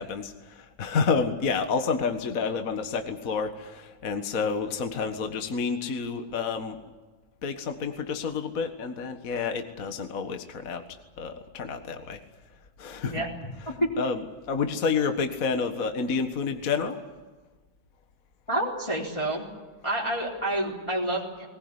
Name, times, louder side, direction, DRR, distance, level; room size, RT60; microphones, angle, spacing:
voice 1, 0.0-6.8 7.4-10.8 11.2-12.2 12.8-13.3 14.0-17.0, left 5 dB, 40° left, 7 dB, 1.3 m, -29 dB
voice 2, 18.5-19.4 19.8-21.5, right 1 dB, 10° left, -4 dB, 3.8 m, -28 dB
21.5 x 19.5 x 9.7 m, 1.3 s
omnidirectional pair, 3.5 m